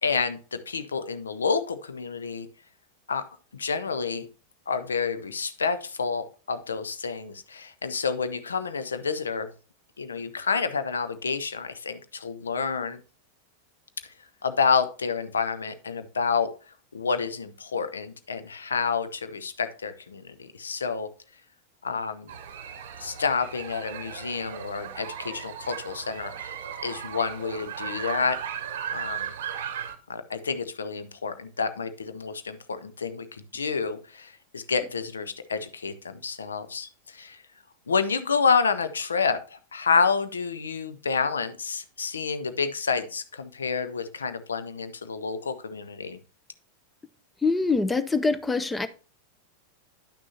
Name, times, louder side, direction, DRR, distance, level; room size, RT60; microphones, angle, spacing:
voice 1, 0.0-2.5 3.1-3.2 3.5-4.3 4.7-9.5 10.0-13.0 14.0-14.1 14.4-16.5 16.9-21.1 21.8-22.3 23.0-28.4 28.9-29.3 30.1-37.4 37.9-46.2, left 5 dB, 70° left, 11 dB, 0.6 m, -29 dB
sound 1, 22.3-29.9, right 9 dB, 55° right, 0.8 m, -36 dB
voice 2, 47.4-48.9, left 3 dB, 10° left, 12 dB, 0.5 m, -24 dB
9.9 x 6.1 x 2.7 m, 0.36 s
figure-of-eight pair, 90°, 0 cm